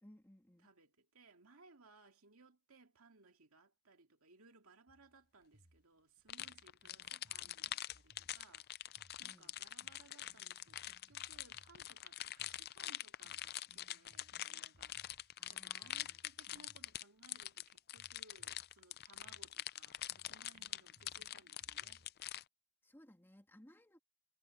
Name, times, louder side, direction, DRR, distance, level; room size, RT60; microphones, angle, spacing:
voice 1, 0.0-0.7 9.2-9.5 15.4-16.2 22.8-24.0, equal, 10° left, 2.4 m, -62 dB
voice 2, 0.6-22.1, right 3 dB, 65° right, 2.4 m, -65 dB
sound 1, 4.9-22.1, equal, 40° right, 4.3 m, -70 dB
sound 2, 6.3-22.4, left 13 dB, 45° left, 0.4 m, -45 dB
head